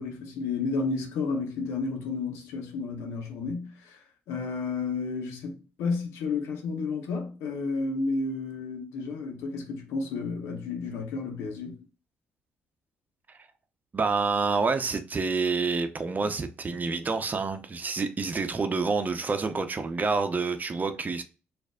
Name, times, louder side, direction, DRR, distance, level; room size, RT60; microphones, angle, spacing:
voice 1, 0.0-4.0 4.3-11.8, left 4 dB, 80° left, 1.0 m, -32 dB
voice 2, 13.9-21.2, right 4 dB, 40° right, 0.7 m, -28 dB
6.3 x 2.6 x 2.3 m
supercardioid pair, 50°, 5 cm